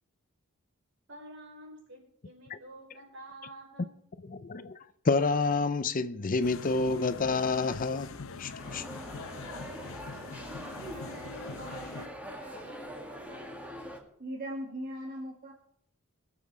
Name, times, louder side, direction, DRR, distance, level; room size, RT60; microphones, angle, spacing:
voice 1, 1.1-3.9 8.8-9.7 10.2-12.8, right 1 dB, 60° right, 5.3 m, -50 dB
voice 2, 4.3-4.8 5.0-8.1 8.4-8.9, left 3 dB, 40° left, 0.5 m, -28 dB
sound 1, 6.4-12.1, left 4 dB, 70° left, 0.8 m, -43 dB
sound 2, 8.6-14.0, equal, 5° right, 2.1 m, -43 dB
voice 3, 14.2-15.5, equal, 45° right, 2.1 m, -38 dB
22.0 x 7.5 x 4.8 m
head